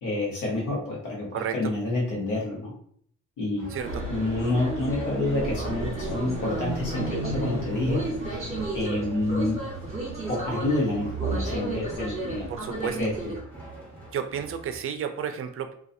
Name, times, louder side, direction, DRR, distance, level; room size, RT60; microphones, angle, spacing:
voice 1, 0.0-2.7 3.4-3.7 4.1-8.0 8.3-8.4 8.7-9.6 10.3-12.5 13.0-13.1, left 2 dB, 85° left, -4 dB, 1.0 m, -28 dB
sound 1, 3.6-14.8, right 2 dB, 5° left, 1.3 m, -44 dB
voice 2, 3.7-4.0 12.5-13.0 14.1-15.7, right 8 dB, 45° right, 7 dB, 0.4 m, -31 dB
sound 2, 3.8-13.4, right 2 dB, 20° right, 1.2 m, -32 dB
2.4 x 2.3 x 2.6 m, 0.62 s
cardioid pair, 90°, 30 cm